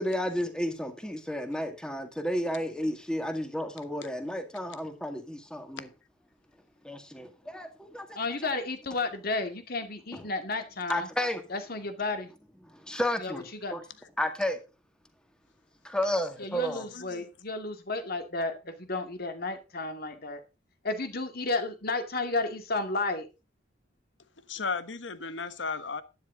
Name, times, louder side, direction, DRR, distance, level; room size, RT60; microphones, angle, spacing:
voice 1, 0.0-5.9 6.8-8.2 10.1-10.2 10.9-11.4 12.7-13.8 14.2-14.6 15.8-16.9, equal, 5° left, 2.0 m, -32 dB
voice 2, 8.2-11.1 11.5-12.3 13.2-13.3 13.6-13.7 16.4-20.4 20.8-23.2, left 3 dB, 55° left, 2.2 m, -32 dB
voice 3, 16.7-17.2 24.5-26.0, left 4 dB, 75° left, 1.3 m, -35 dB
12.0 x 10.5 x 3.8 m
head